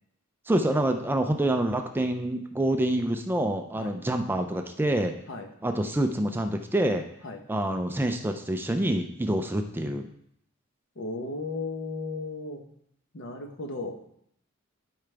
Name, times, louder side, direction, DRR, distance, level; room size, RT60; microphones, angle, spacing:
voice 1, 0.5-5.1 5.6-7.0 7.5-10.1, right 1 dB, 10° right, 5 dB, 0.4 m, -27 dB
voice 2, 10.9-12.6 13.1-14.0, left 3 dB, 60° left, 4 dB, 1.0 m, -35 dB
12.0 x 4.9 x 3.3 m, 0.72 s
head